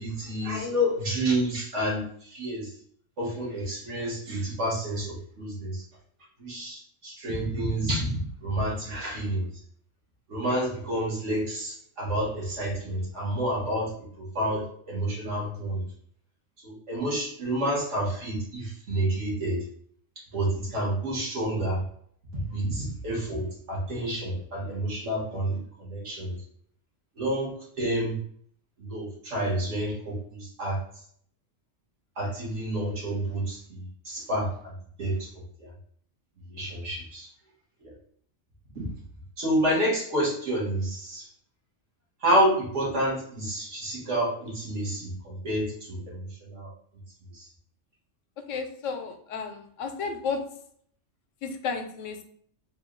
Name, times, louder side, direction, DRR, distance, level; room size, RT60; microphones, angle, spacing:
voice 1, 0.0-2.0 2.3-2.7 3.2-5.8 6.4-9.5 10.3-15.8 16.6-19.6 20.3-21.8 22.3-25.6 25.9-26.3 27.2-28.2 28.8-30.8 32.2-34.5 35.0-35.1 36.5-37.3 37.8-37.9 38.7-38.8 39.4-41.3 42.2-46.7 47.4-47.5, right 1 dB, 70° right, -4 dB, 1.6 m, -29 dB
voice 2, 48.5-50.4 51.4-52.2, left 5 dB, 85° left, 6 dB, 0.9 m, -32 dB
3.7 x 2.3 x 3.6 m, 0.62 s
omnidirectional pair, 1.3 m